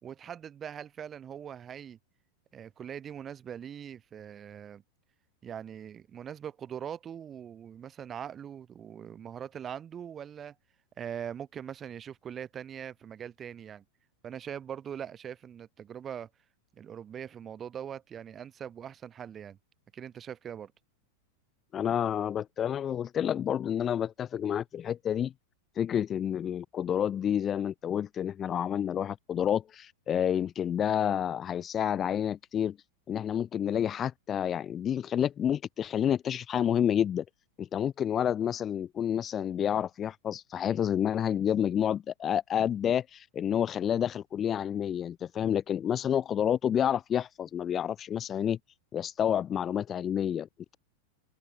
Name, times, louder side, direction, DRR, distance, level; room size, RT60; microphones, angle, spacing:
voice 1, 0.0-2.0 2.5-4.8 5.4-10.6 11.0-13.8 14.2-16.3 16.8-19.6 19.9-20.7, right 8 dB, 25° right, 4.3 m, -41 dB
voice 2, 21.7-25.3 25.8-32.7 33.1-37.2 37.6-48.6 48.9-50.5, left 9 dB, 25° left, 1.3 m, -29 dB
open air
figure-of-eight pair, 90°, 0 cm